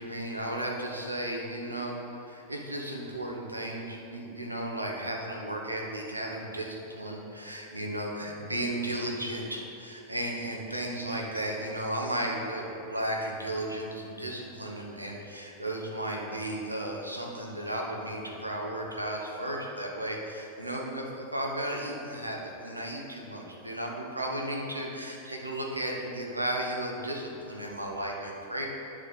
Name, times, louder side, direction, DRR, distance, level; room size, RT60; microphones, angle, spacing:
voice 1, 0.0-2.0 2.2-28.7, right 1 dB, 85° right, -1 dB, 1.1 m, -34 dB
10.0 x 3.7 x 6.5 m, 2.9 s
figure-of-eight pair, 90°, 0 cm